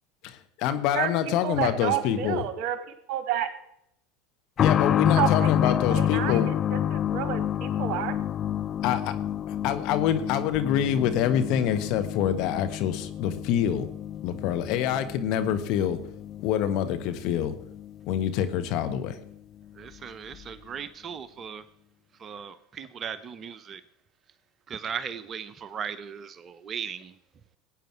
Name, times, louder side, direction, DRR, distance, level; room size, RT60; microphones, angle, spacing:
voice 1, 0.2-2.4 4.6-6.5 8.8-9.1 9.5-13.9 14.2-16.0 16.4-17.6 18.1-19.2, left 10 dB, 60° left, 1.4 m, -26 dB
voice 2, 0.9-3.5 5.2-8.2, right 10 dB, 55° right, 1.9 m, -30 dB
sound 1, 4.6-19.0 19.3-19.4 20.3-20.4, left 10 dB, 40° left, 0.4 m, -29 dB
voice 3, 19.7-21.6 22.2-23.8 24.7-27.1, right 7 dB, 35° right, 0.8 m, -37 dB
20.0 x 9.0 x 4.7 m
hypercardioid pair, 80°, 0 cm